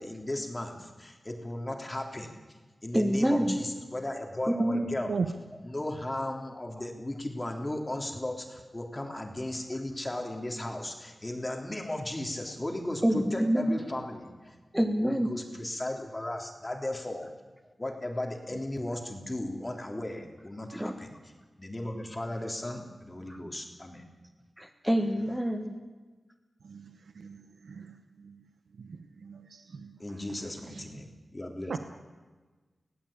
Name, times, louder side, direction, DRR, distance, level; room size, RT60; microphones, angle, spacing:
voice 1, 0.0-2.4 2.8-5.2 5.6-17.3 17.8-21.1 21.6-24.0 30.0-31.8, left 1 dB, 25° left, 3 dB, 3.5 m, -36 dB
voice 2, 2.9-3.6 4.5-4.9 13.0-13.8 14.7-15.3 20.7-20.9 23.3-23.4 24.6-25.8, equal, 5° right, 4 dB, 1.8 m, -26 dB
voice 3, 29.2-29.9 31.7-31.8, right 5 dB, 85° right, 8 dB, 1.0 m, -35 dB
24.0 x 16.5 x 8.8 m, 1.3 s
cardioid pair, 50°, 0 cm